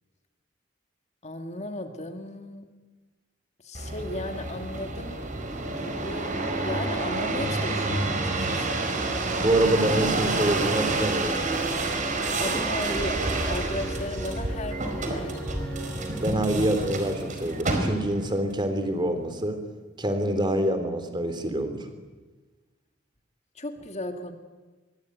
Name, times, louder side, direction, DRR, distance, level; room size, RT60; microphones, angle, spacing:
voice 1, 1.2-2.7 3.6-5.2 5.6-8.8 12.4-15.4 23.6-24.3, left 1 dB, 35° left, 6 dB, 2.1 m, -35 dB
sound 1, 3.7-18.3 18.9-19.4, right 2 dB, 40° right, 4.4 m, -29 dB
sound 2, 5.3-17.9, right 1 dB, 5° left, 2.3 m, -39 dB
voice 2, 9.4-11.4 16.2-19.6 20.0-21.8, right 1 dB, 25° right, 8 dB, 3.2 m, -26 dB
24.5 x 22.5 x 9.4 m, 1.3 s
head